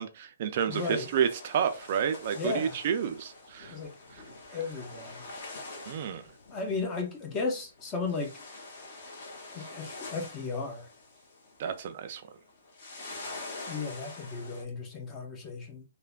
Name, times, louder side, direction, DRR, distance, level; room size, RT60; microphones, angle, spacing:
voice 1, 0.0-3.8 4.1-4.2 5.9-6.3 11.6-12.2, right 8 dB, 40° right, 0.3 m, -30 dB
sound 1, 0.7-7.1 7.3-7.4 7.6-12.2 12.5-14.6, left 3 dB, 40° left, 0.9 m, -45 dB
voice 2, 0.7-1.1 2.3-2.8 3.7-4.0 4.5-5.2 6.5-8.3 9.5-10.9 13.7-15.8, left 4 dB, 15° left, 0.5 m, -35 dB
3.3 x 2.1 x 2.3 m
hypercardioid pair, 165°, 0 cm